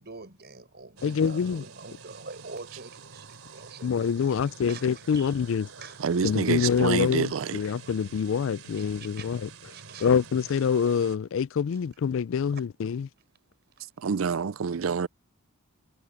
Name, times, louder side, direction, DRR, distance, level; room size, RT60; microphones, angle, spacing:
voice 1, 0.0-4.1 4.4-5.3 5.8-6.4 6.9-7.4 7.7-8.2 9.0-9.4 9.7-10.1 12.5-12.6 13.8-13.9, right 4 dB, 50° right, 5.4 m, -46 dB
voice 2, 1.0-1.6 3.8-5.7 6.2-9.5 10.0-13.1, left 6 dB, 65° left, 0.4 m, -26 dB
sound 1, 1.0-11.2, right 5 dB, 90° right, 3.2 m, -48 dB
voice 3, 6.0-7.6 14.0-15.1, right 6 dB, 70° right, 0.5 m, -27 dB
head